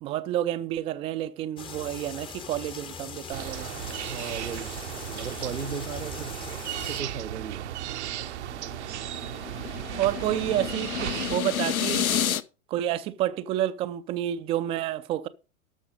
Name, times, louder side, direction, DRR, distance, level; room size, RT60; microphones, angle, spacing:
voice 1, 0.0-3.7 10.0-12.1 12.7-15.3, right 13 dB, 15° right, 0.4 m, -29 dB
sound 1, 1.6-7.0, left 6 dB, 10° left, 0.7 m, -41 dB
sound 2, 3.3-11.3, right 12 dB, 55° right, 0.8 m, -35 dB
voice 2, 4.1-4.7 5.1-6.4 6.9-7.7, right 6 dB, 85° right, 0.8 m, -36 dB
sound 3, 8.1-12.4, left 9 dB, 75° left, 0.9 m, -30 dB
12.5 x 6.2 x 5.2 m
figure-of-eight pair, 100°, 43 cm